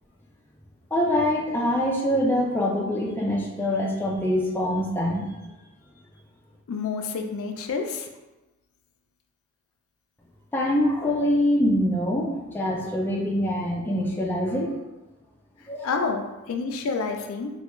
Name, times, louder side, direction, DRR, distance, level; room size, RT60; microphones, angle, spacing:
voice 1, 0.9-5.2 10.5-14.7 15.7-16.1, left 1 dB, 10° left, -3 dB, 0.3 m, -24 dB
voice 2, 6.7-8.1 15.8-17.5, left 4 dB, 85° left, 4 dB, 0.4 m, -29 dB
3.2 x 2.3 x 3.0 m, 1.0 s
head